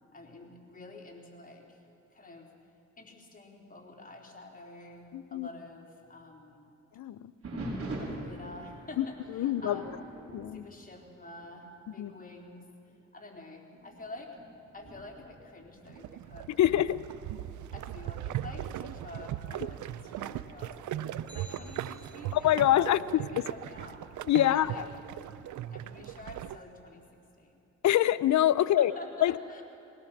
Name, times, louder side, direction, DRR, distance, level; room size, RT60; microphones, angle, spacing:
voice 1, 0.1-1.8 2.1-2.5 3.0-6.7 7.9-10.0 10.5-14.3 14.7-16.8 17.7-24.0 24.3-24.9 25.7-27.6 28.6-29.6, left 2 dB, 30° left, 0 dB, 3.8 m, -48 dB
voice 2, 5.1-5.5 7.0-7.3 9.0-9.1 9.3-9.8 10.3-10.7 12.0-12.1 16.6-17.0 22.3-23.5 24.3-24.7 27.8-28.9 29.2-29.3, left 12 dB, 75° left, 15 dB, 0.6 m, -25 dB
sound 1, 7.4-11.6 11.9-12.3 12.9-13.0 13.7-16.4 18.3-18.8, right 1 dB, 50° right, 4.9 m, -43 dB
sound 2, 15.9-26.6, right 12 dB, 85° right, 0.6 m, -39 dB
sound 3, 21.3-22.7, left 1 dB, 15° right, 2.6 m, -54 dB
20.0 x 18.0 x 7.2 m, 2.9 s
cardioid pair, 70°, 29 cm